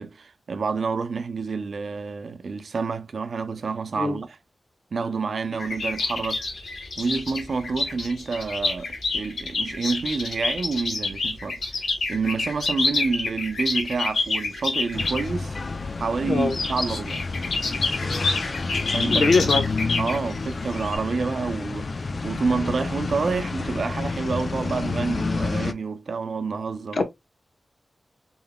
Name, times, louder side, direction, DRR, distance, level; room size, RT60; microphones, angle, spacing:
voice 1, 0.0-4.4 4.9-6.4 7.0-11.8 12.1-15.6 16.0-17.2 18.9-19.6 20.0-21.9 22.2-27.0, right 4 dB, 75° right, 0.5 m, -28 dB
sound 1, 5.6-15.3 16.4-21.0, left 3 dB, 90° left, 1.2 m, -28 dB
sound 2, 14.9-25.7, left 3 dB, 50° left, 0.4 m, -29 dB
voice 2, 19.0-19.6 27.0-27.1, left 3 dB, 70° left, 0.9 m, -21 dB
3.9 x 3.7 x 2.2 m
wide cardioid pair, 85°, 0 cm